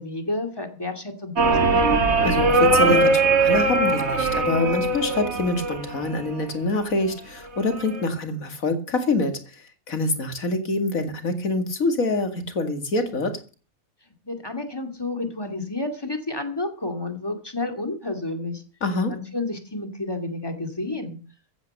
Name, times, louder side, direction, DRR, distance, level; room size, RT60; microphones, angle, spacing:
voice 1, 0.0-2.0 14.2-18.6 19.1-21.2, left 2 dB, 15° left, 5 dB, 2.4 m, -30 dB
sound 1, 1.4-6.4 7.5-8.0, right 3 dB, 50° right, 2.0 m, -21 dB
voice 2, 2.2-13.4 18.8-19.1, left 2 dB, 70° left, 7 dB, 2.6 m, -25 dB
15.0 x 9.6 x 6.7 m, 0.38 s
omnidirectional pair, 1.5 m